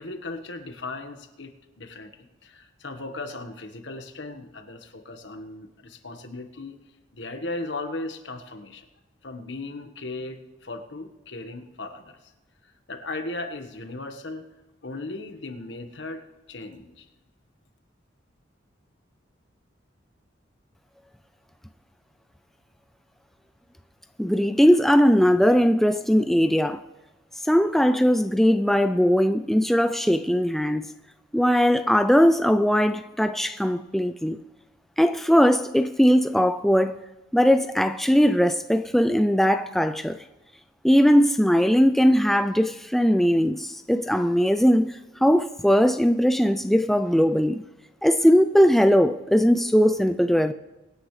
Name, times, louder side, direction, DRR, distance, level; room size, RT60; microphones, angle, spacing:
voice 1, 0.0-2.1 2.4-6.7 7.1-8.9 9.2-12.3 12.9-14.5 14.8-17.1, left 2 dB, 70° left, 1.4 m, -37 dB
voice 2, 24.2-26.8 27.4-30.9 31.3-34.4 35.0-37.0 37.3-40.2 40.8-47.6 48.0-50.5, equal, ahead, 0.3 m, -20 dB
24.5 x 10.0 x 3.2 m
head